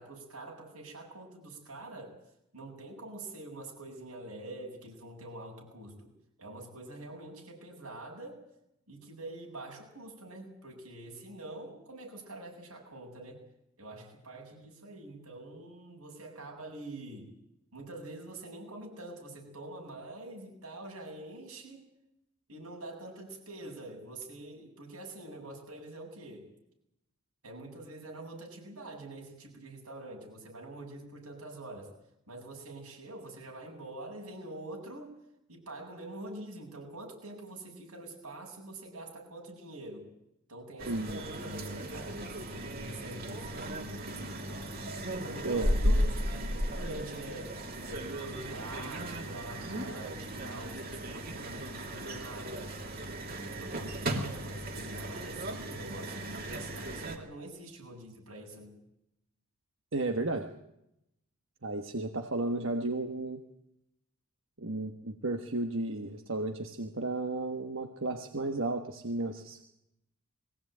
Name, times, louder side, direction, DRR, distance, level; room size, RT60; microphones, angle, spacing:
voice 1, 0.0-2.2 2.5-6.1 6.4-8.4 8.9-13.4 13.8-17.3 17.7-21.8 22.5-26.5 27.4-32.0 32.3-35.1 35.5-40.1 40.5-44.7 45.1-52.8 53.2-58.7, right 1 dB, 90° right, 0 dB, 8.0 m, -45 dB
sound 1, 40.8-57.2, equal, 45° right, 2.8 m, -35 dB
voice 2, 40.9-41.2 45.4-45.9 59.9-60.5 61.6-63.4 64.6-69.6, right 2 dB, 60° right, 4 dB, 1.4 m, -33 dB
22.0 x 17.0 x 9.2 m, 0.83 s
head